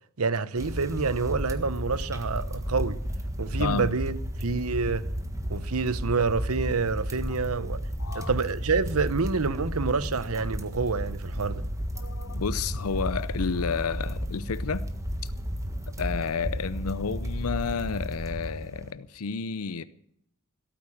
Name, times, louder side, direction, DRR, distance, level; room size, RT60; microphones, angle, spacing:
voice 1, 0.2-3.0 3.4-5.1 5.5-7.8 8.1-11.6, right 4 dB, 80° right, 0.8 m, -27 dB
sound 1, 0.6-18.9, equal, 15° right, 1.5 m, -33 dB
voice 2, 3.6-3.9 8.0-8.3 12.0-14.9 15.2-15.3 16.0-19.8, left 5 dB, 85° left, 0.6 m, -31 dB
16.5 x 9.1 x 8.6 m
head